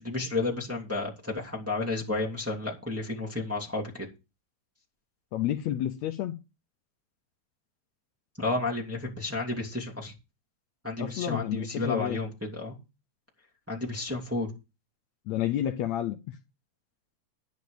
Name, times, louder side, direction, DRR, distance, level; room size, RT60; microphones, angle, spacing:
voice 1, 0.0-4.1 8.4-10.1 10.8-12.8 13.7-14.5, left 3 dB, 5° right, -3 dB, 2.3 m, -31 dB
voice 2, 5.3-6.4 11.0-12.2 15.3-16.4, left 12 dB, 75° left, 9 dB, 1.9 m, -30 dB
10.5 x 8.9 x 5.0 m, 0.28 s
omnidirectional pair, 3.4 m